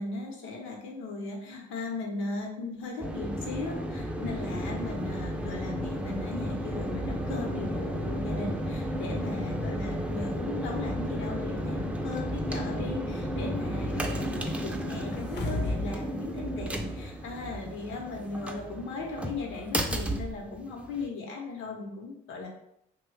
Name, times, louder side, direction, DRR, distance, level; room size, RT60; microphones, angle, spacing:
voice 1, 0.0-22.5, left 3 dB, 90° left, 1 dB, 0.8 m, -37 dB
sound 1, 3.0-21.1, equal, 5° right, 0.3 m, -33 dB
sound 2, 15.1-16.0 16.3-16.4, left 2 dB, 60° left, 0.5 m, -31 dB
3.0 x 2.2 x 3.2 m, 0.75 s
cardioid pair, 90°, 20 cm